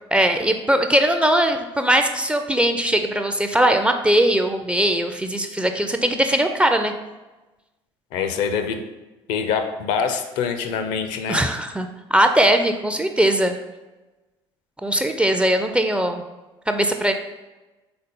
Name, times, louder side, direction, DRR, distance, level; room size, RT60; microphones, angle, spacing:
voice 1, 0.1-6.9 11.3-13.6 14.8-16.2 16.7-17.1, right 1 dB, 10° right, 6 dB, 0.4 m, -20 dB
voice 2, 8.1-8.8 9.3-11.4, left 6 dB, 60° left, 8 dB, 0.5 m, -24 dB
3.9 x 3.8 x 3.6 m, 1.1 s
figure-of-eight pair, 55°, 14 cm